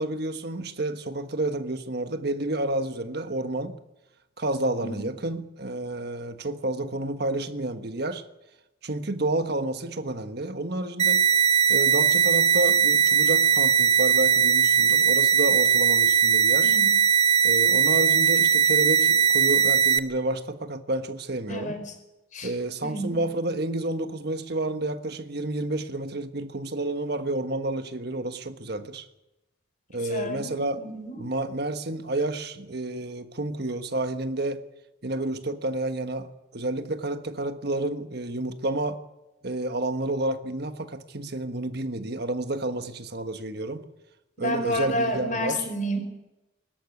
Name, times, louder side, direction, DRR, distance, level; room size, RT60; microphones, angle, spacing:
voice 1, 0.0-3.8 4.4-8.2 8.8-11.2 11.7-16.8 17.4-21.8 22.4-29.0 29.9-30.8 31.2-34.6 35.0-39.0 39.4-43.9 44.4-45.7, right 2 dB, 55° right, 1.4 m, -30 dB
sound 1, 11.0-20.0, right 7 dB, 35° right, 0.9 m, -20 dB
voice 2, 21.5-22.0 22.3-22.5 22.8-23.2 30.1-31.2 44.4-46.0, equal, 40° left, 5.2 m, -30 dB
24.0 x 14.0 x 9.6 m
head